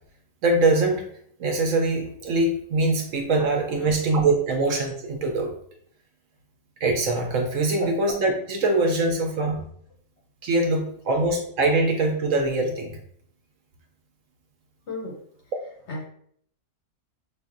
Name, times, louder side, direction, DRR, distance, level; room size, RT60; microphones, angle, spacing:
voice 1, 0.4-1.1 1.4-5.5 6.8-9.6 10.4-13.0, right 2 dB, 70° right, 2 dB, 0.8 m, -23 dB
voice 2, 14.9-15.2 15.9-16.1, left 2 dB, 55° left, -1 dB, 0.8 m, -32 dB
5.1 x 2.4 x 2.4 m, 0.65 s
omnidirectional pair, 1.6 m